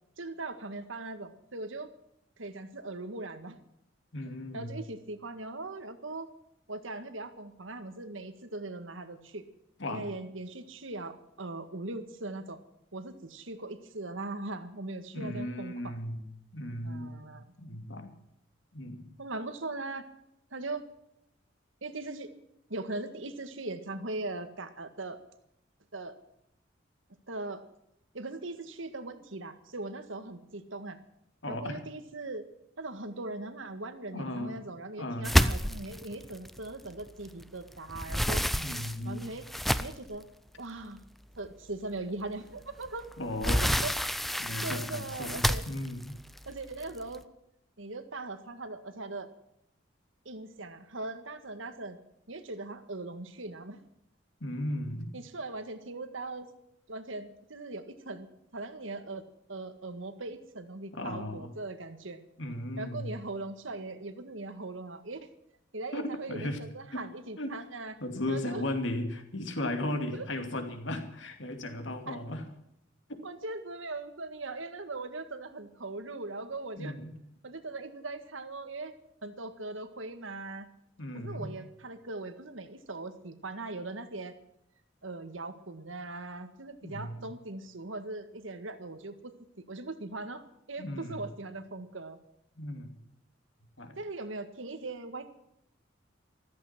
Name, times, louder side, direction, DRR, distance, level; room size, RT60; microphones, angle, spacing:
voice 1, 0.2-1.9 2.4-3.6 4.5-6.3 6.7-9.4 9.9-12.6 12.9-16.0 16.8-17.4 19.2-20.0 20.5-20.8 21.8-22.3 22.7-25.2 25.9-26.2 27.3-27.6 28.1-31.0 31.5-32.4 32.8-38.5 39.0-39.5 39.8-40.3 40.6-41.0 41.4-43.1 43.8-43.9 44.6-45.6 46.5-47.2 47.8-49.3 50.3-52.0 52.3-53.8 55.1-56.5 56.9-58.3 58.5-59.2 59.5-62.2 62.8-65.3 65.7-68.0 68.3-68.6 70.1-70.3 72.1-72.2 73.2-77.0 77.4-79.0 79.2-80.7 81.1-84.4 85.0-92.2 94.0-95.3, right 2 dB, 80° right, 9 dB, 1.8 m, -40 dB
voice 2, 4.1-4.8 9.8-10.1 15.1-16.3 16.5-17.3 17.6-18.1 18.7-19.1 31.4-31.8 34.1-34.5 35.0-35.3 38.5-39.4 43.2-43.8 44.4-45.4 45.7-46.2 54.4-55.1 60.9-61.5 62.4-63.1 65.9-66.6 66.9-67.1 67.4-67.6 68.0-72.4 73.1-73.2 76.8-77.1 81.0-81.5 86.8-87.2 90.8-91.2 92.6-92.9 93.8-94.0, left 1 dB, 70° left, 6 dB, 2.6 m, -36 dB
sound 1, 35.2-37.4 37.8-40.2 40.8-40.9 41.4-41.5 42.9-47.2, equal, ahead, 0.6 m, -29 dB
15.0 x 14.0 x 6.0 m, 0.77 s
head